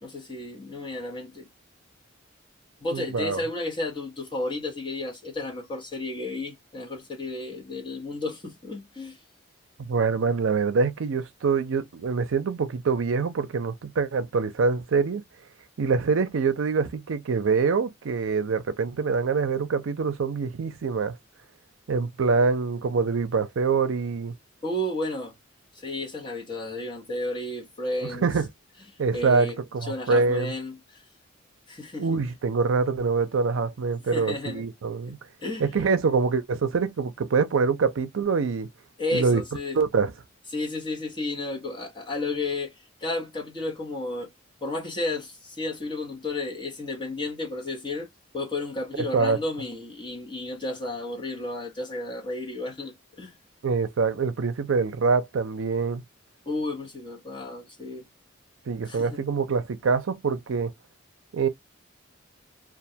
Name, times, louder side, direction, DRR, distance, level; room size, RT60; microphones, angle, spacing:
voice 1, 0.0-1.5 2.8-9.2 24.6-25.3 25.7-28.3 29.1-29.6 29.8-31.0 31.7-32.1 34.0-34.7 35.0-35.1 35.4-35.7 39.0-39.8 40.5-42.7 43.0-44.3 44.6-48.1 48.3-53.3 56.5-58.0 58.9-59.2, left 2 dB, 25° left, 0.9 m, -32 dB
voice 2, 2.9-3.4 9.8-15.2 15.8-21.2 21.9-24.4 28.1-28.5 29.0-30.5 32.0-35.2 35.6-38.7 39.1-39.4 39.7-40.1 49.0-49.4 53.6-56.0 58.7-60.7 61.3-61.5, right 5 dB, 75° right, 0.5 m, -25 dB
2.3 x 2.2 x 2.6 m
head